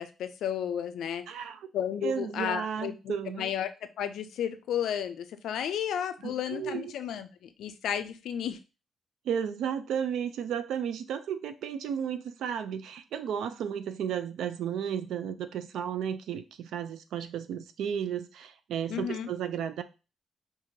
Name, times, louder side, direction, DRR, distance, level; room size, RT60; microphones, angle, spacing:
voice 1, 0.0-1.3 1.7-3.7 4.0-8.6 18.9-19.3, left 9 dB, 80° left, 10 dB, 0.4 m, -33 dB
voice 2, 1.3-1.6 2.0-3.5 6.2-6.9 9.2-19.8, right 8 dB, 85° right, 10 dB, 0.4 m, -33 dB
4.5 x 2.5 x 2.7 m, 0.31 s
cardioid pair, 160°, 0 cm